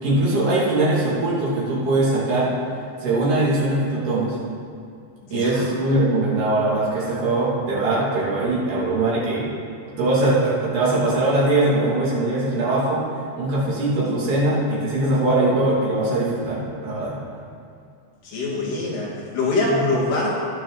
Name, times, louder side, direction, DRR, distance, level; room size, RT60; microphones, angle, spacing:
voice 1, 0.0-2.5 3.0-4.4 5.3-9.5 10.0-13.0 13.4-17.2, right 2 dB, 85° right, -7 dB, 4.3 m, -21 dB
voice 2, 5.2-5.7 18.2-20.3, left 2 dB, 85° left, -5 dB, 3.9 m, -24 dB
19.5 x 6.6 x 4.1 m, 2.4 s
omnidirectional pair, 3.6 m